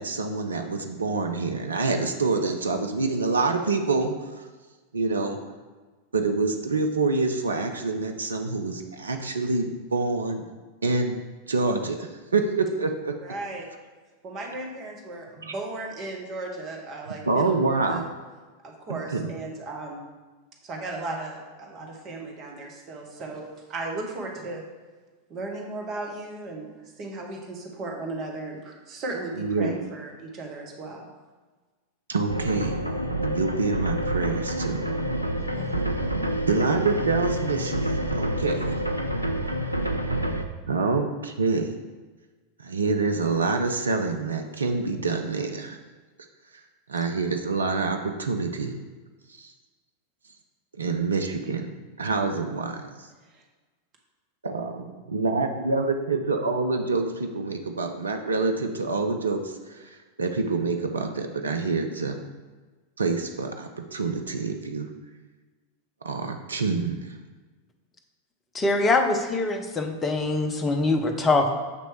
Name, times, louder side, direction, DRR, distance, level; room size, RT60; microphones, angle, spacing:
voice 1, 0.0-4.5 4.9-5.4 6.1-10.4 10.8-13.1 15.4-15.5 17.3-18.1 18.9-19.3 29.4-29.8 32.1-32.8 33.2-34.9 36.5-38.6 40.7-41.7 42.6-45.8 46.5-46.6 46.9-48.8 49.3-49.5 50.8-51.7 52.0-53.1 54.4-62.2 63.0-64.9 66.0-67.2, right 3 dB, 75° right, 5 dB, 0.4 m, -27 dB
voice 2, 13.2-13.7 14.2-18.0 18.6-20.0 20.6-24.6 25.3-26.7 27.0-31.1 35.4-35.8 53.3-53.4, right 2 dB, 35° right, 0 dB, 1.1 m, -36 dB
sound 1, 32.3-40.4, right 1 dB, 90° left, 0.4 m, -28 dB
voice 3, 68.5-71.5, left 2 dB, 20° left, 4 dB, 0.6 m, -23 dB
6.7 x 3.0 x 4.7 m, 1.3 s
figure-of-eight pair, 90°, 0 cm